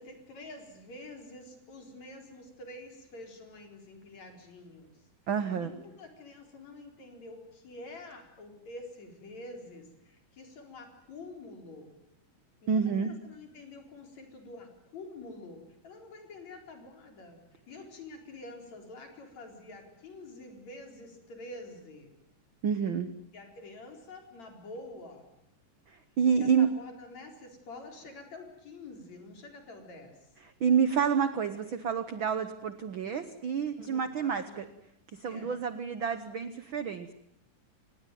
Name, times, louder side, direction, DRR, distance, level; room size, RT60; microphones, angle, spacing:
voice 1, 0.0-5.1 5.6-11.9 12.6-22.1 23.3-25.2 26.4-30.3 33.8-34.6 35.2-35.5, left 2 dB, 55° left, 3 dB, 5.4 m, -47 dB
voice 2, 5.3-5.7 12.7-13.1 22.6-23.1 25.9-26.7 30.6-34.7 35.1-37.1, right 7 dB, 80° right, 11 dB, 1.1 m, -28 dB
27.0 x 19.0 x 9.3 m, 0.83 s
omnidirectional pair, 3.9 m